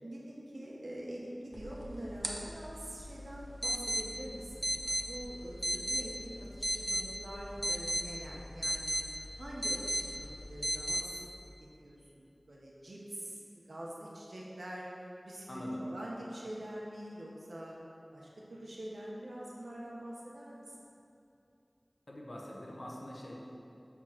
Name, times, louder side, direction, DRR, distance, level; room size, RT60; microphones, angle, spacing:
voice 1, 0.0-11.2 11.8-14.9 15.2-17.7 18.1-20.6, right 1 dB, 85° right, -4 dB, 0.9 m, -45 dB
sound 1, 1.5-11.0, equal, 10° right, 0.9 m, -37 dB
voice 2, 15.5-15.8 22.1-23.3, left 1 dB, 50° left, -3 dB, 1.1 m, -43 dB
7.4 x 3.7 x 5.9 m, 2.7 s
wide cardioid pair, 50°, 0 cm